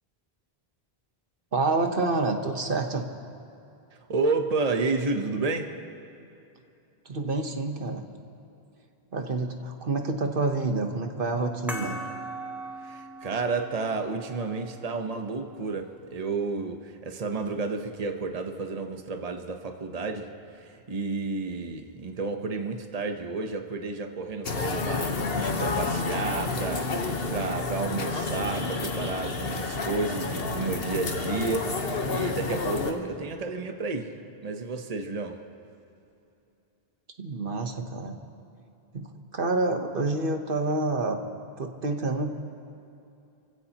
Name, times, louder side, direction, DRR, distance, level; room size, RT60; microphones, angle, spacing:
voice 1, 1.5-3.0 7.0-8.0 9.1-12.0 37.2-38.2 38.9-41.2 41.6-42.3, right 3 dB, 60° right, 5 dB, 1.3 m, -28 dB
voice 2, 3.9-5.7 12.8-34.1 34.4-35.4, right 3 dB, 40° right, 4 dB, 1.1 m, -31 dB
sound 1, 11.7-16.8, right 2 dB, ahead, 1.2 m, -41 dB
sound 2, 24.4-32.9, left 3 dB, 70° left, 1.4 m, -30 dB
28.0 x 16.0 x 3.0 m, 2.7 s
omnidirectional pair, 1.0 m